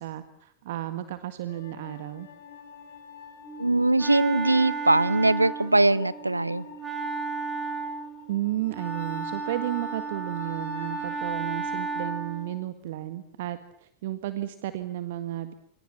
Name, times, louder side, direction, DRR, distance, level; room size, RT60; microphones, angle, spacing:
voice 1, 0.0-2.3 8.3-15.5, right 14 dB, 55° right, 11 dB, 1.7 m, -33 dB
sound 1, 1.5-11.4, left 8 dB, 60° left, 4.3 m, -48 dB
Wind instrument woodwind instrument, 3.4-12.5, right 4 dB, 10° right, 5.1 m, -34 dB
voice 2, 3.6-6.6, right 2 dB, 85° right, 18 dB, 1.1 m, -21 dB
29.0 x 25.5 x 7.3 m, 0.72 s
figure-of-eight pair, 90°, 0 cm